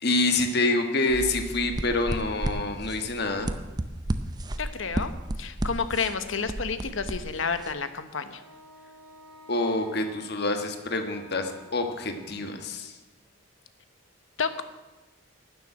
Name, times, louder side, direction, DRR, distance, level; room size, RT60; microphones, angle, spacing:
voice 1, 0.0-3.5 9.5-13.0, left 2 dB, 50° left, 5 dB, 1.5 m, -27 dB
sound 1, 1.1-7.7, right 1 dB, 20° right, 0.5 m, -33 dB
voice 2, 4.6-5.1 5.4-8.4 14.4-14.6, left 5 dB, 70° left, 10 dB, 1.0 m, -30 dB
Wind instrument woodwind instrument, 8.3-12.9, left 2 dB, 75° right, 5.5 m, -51 dB
12.5 x 7.2 x 9.9 m, 1.2 s
head